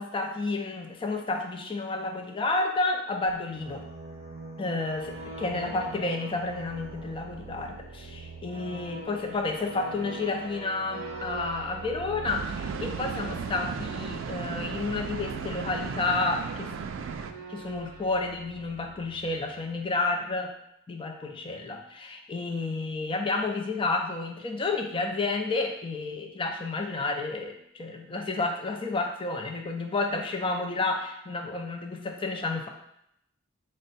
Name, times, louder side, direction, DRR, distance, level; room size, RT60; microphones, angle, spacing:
voice 1, 0.0-3.8 4.6-16.7 17.5-20.5 20.9-32.7, left 3 dB, 25° left, 3 dB, 0.4 m, -31 dB
sound 1, 3.3-19.9, right 3 dB, 50° right, 0.7 m, -43 dB
sound 2, 12.3-17.3, right 6 dB, 80° right, 0.3 m, -35 dB
4.3 x 2.1 x 4.0 m, 0.78 s
head